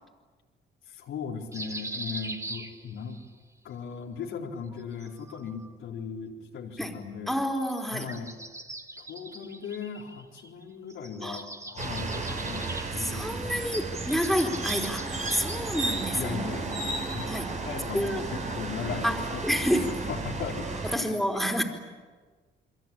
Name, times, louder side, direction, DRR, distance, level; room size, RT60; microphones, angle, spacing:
voice 1, 0.9-3.2 3.6-7.3 7.9-8.3 9.0-13.4 16.1-19.5 19.8-21.2, left 6 dB, 80° left, 0 dB, 4.1 m, -38 dB
sound 1, 1.5-3.3 4.7-5.7 7.7-10.6 10.9-16.1, right 2 dB, 15° right, 2.3 m, -41 dB
voice 2, 7.3-8.1 11.2-11.4 13.0-16.4 17.3-17.5 17.9-18.2 19.0-20.0 20.9-21.6, equal, ahead, 3 dB, 4.2 m, -29 dB
sound 2, 11.8-21.0, right 3 dB, 35° right, 4.1 m, -33 dB
29.5 x 23.0 x 8.8 m, 1.4 s
cardioid pair, 90°, 20 cm